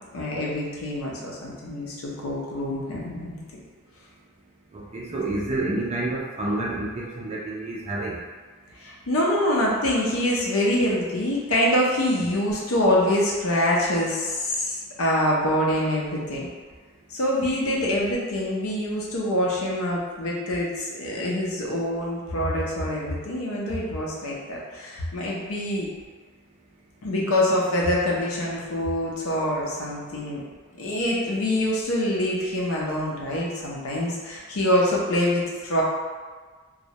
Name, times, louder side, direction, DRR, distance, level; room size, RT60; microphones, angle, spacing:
voice 1, 0.1-3.4 8.8-16.5 17.1-25.9 27.0-30.4 30.8-35.8, left 1 dB, 80° left, -3 dB, 0.6 m, -25 dB
voice 2, 4.7-8.2, right 2 dB, 30° right, -4 dB, 0.3 m, -29 dB
2.2 x 2.0 x 2.7 m, 1.5 s
head